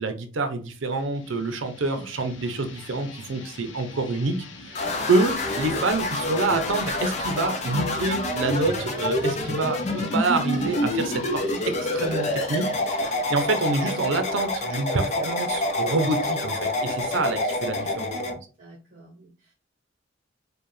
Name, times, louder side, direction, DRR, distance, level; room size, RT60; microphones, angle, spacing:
voice 1, 0.0-4.7 5.1-18.4, right 3 dB, 75° right, 7 dB, 0.6 m, -27 dB
sound 1, 0.7-16.1, left 3 dB, 75° left, 0.7 m, -45 dB
sound 2, 4.7-18.3, left 1 dB, 35° left, 0.6 m, -27 dB
voice 2, 18.6-19.5, right 2 dB, 45° right, -4 dB, 1.0 m, -49 dB
4.6 x 2.2 x 3.1 m, 0.36 s
head